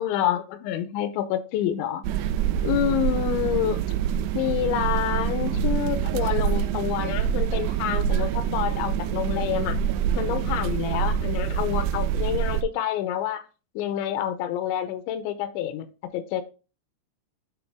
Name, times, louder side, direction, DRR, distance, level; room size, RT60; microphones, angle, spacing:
voice 1, 0.0-2.0 2.6-3.8 4.3-9.8 10.2-13.4 13.8-15.9 16.1-16.4, left 11 dB, 85° left, 2.9 m, -27 dB
sound 1, 2.0-12.6, right 9 dB, 85° right, 2.4 m, -26 dB
11.0 x 3.8 x 3.4 m
omnidirectional pair, 5.3 m